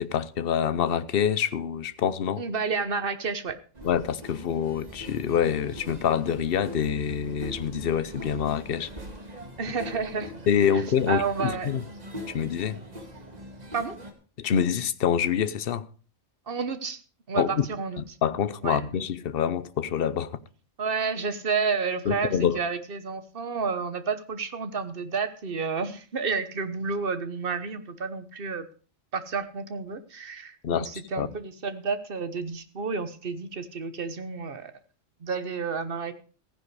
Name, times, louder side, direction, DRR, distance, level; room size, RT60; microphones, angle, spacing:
voice 1, 0.0-2.4 3.8-8.9 10.5-11.8 12.3-12.8 14.4-15.9 17.3-17.7 18.0-20.4 22.1-22.6 30.6-30.9 31.2-31.3, left 8 dB, 50° left, 0.9 m, -26 dB
voice 2, 2.4-3.6 9.6-10.3 10.6-11.7 13.7-14.0 16.5-17.0 17.3-18.0 18.6-18.8 20.8-28.7 29.1-34.7 35.2-36.1, right 5 dB, 45° right, 1.3 m, -30 dB
sound 1, 3.7-14.1, equal, 30° right, 2.1 m, -42 dB
15.0 x 10.5 x 4.8 m
omnidirectional pair, 1.3 m